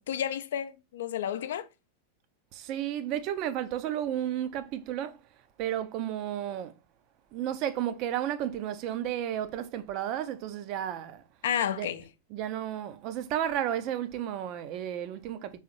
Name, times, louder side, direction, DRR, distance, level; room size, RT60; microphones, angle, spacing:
voice 1, 0.0-1.7 11.4-12.0, left 9 dB, 60° left, 0.3 m, -31 dB
voice 2, 2.5-5.2 5.6-6.8 7.3-11.2 11.7-11.9 12.3-15.6, right 11 dB, 40° right, 0.4 m, -32 dB
3.7 x 3.1 x 2.9 m
figure-of-eight pair, 90°, 0 cm